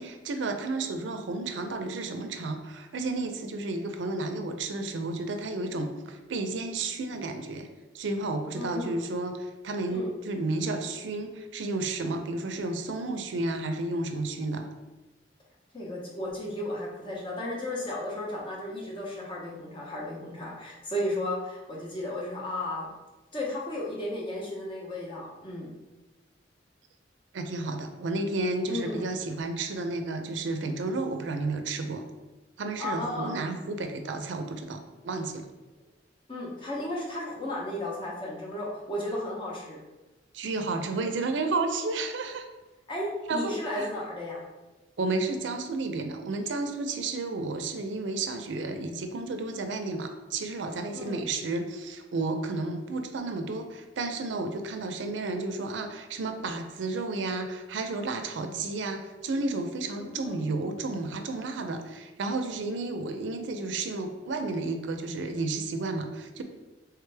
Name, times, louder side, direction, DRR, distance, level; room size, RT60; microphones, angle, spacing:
voice 1, 0.0-7.7 7.9-14.7 27.3-32.1 32.6-35.5 40.3-42.5 43.3-43.9 45.0-66.4, right 3 dB, 85° right, 6 dB, 0.5 m, -32 dB
voice 2, 8.5-9.0 9.9-10.1 15.7-22.9 23.3-25.7 28.7-29.0 32.8-33.3 36.3-39.8 42.9-44.4 50.9-51.2 60.1-60.5, left 1 dB, 30° left, -4 dB, 0.9 m, -34 dB
3.3 x 3.2 x 3.3 m, 1.1 s
head